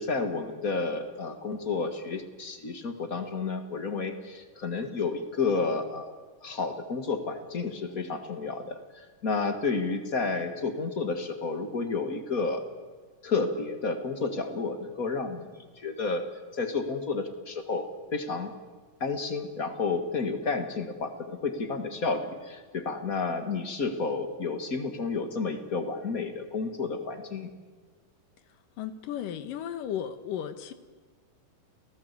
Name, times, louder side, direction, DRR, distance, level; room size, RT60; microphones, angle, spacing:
voice 1, 0.0-6.1 6.4-8.8 9.2-12.6 13.2-15.5 15.8-16.3 16.5-17.9 18.1-18.5 19.0-27.5, left 4 dB, 30° left, 7 dB, 1.8 m, -31 dB
voice 2, 28.5-30.7, left 9 dB, 80° left, 11 dB, 2.9 m, -35 dB
29.5 x 18.5 x 8.4 m, 1.4 s
omnidirectional pair, 3.9 m